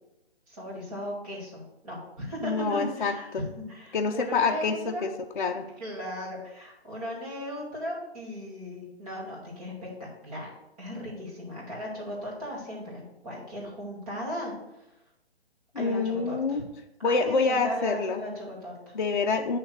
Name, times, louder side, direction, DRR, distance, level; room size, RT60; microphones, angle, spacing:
voice 1, 0.5-3.3 3.6-5.1 5.8-10.5 10.8-14.8 15.7-16.6 17.0-18.9, equal, 35° right, -5 dB, 2.5 m, -37 dB
voice 2, 2.4-3.4 3.9-5.1 5.4-5.7 15.7-16.6 17.0-18.2 18.9-19.6, left 4 dB, 50° left, 3 dB, 0.4 m, -27 dB
8.5 x 3.2 x 4.7 m, 0.91 s
hypercardioid pair, 170°, 33 cm